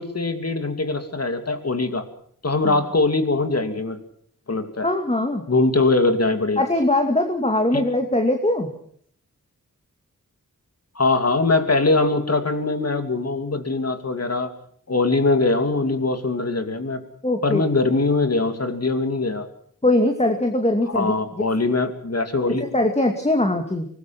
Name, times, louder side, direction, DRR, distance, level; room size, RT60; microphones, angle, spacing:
voice 1, 0.0-2.1 2.4-4.0 4.5-4.9 5.5-6.6 7.7-7.8 10.9-14.5 14.9-17.0 17.4-19.5 20.9-22.7, left 3 dB, 50° left, 8 dB, 2.9 m, -22 dB
voice 2, 4.8-5.4 6.6-8.7 17.2-17.6 19.8-21.2 22.7-23.9, left 1 dB, 20° left, 4 dB, 2.5 m, -21 dB
24.5 x 19.5 x 6.1 m, 0.63 s
wide cardioid pair, 85°, 33 cm